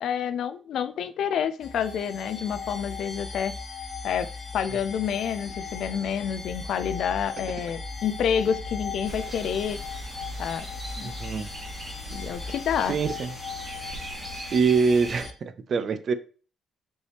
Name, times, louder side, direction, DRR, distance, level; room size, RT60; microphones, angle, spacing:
voice 1, 0.0-3.5 4.0-4.3 4.5-9.8 10.4-10.7 11.0-11.1 12.1-13.0, left 8 dB, 70° left, 0.4 m, -28 dB
sound 1, 1.6-15.3, left 4 dB, 50° left, 0.8 m, -38 dB
sound 2, 9.0-15.2, right 2 dB, 35° right, 1.6 m, -41 dB
voice 2, 11.0-11.5 12.9-13.3 14.5-16.1, right 5 dB, 50° right, 0.5 m, -24 dB
5.2 x 3.1 x 3.3 m
cardioid pair, 90°, 0 cm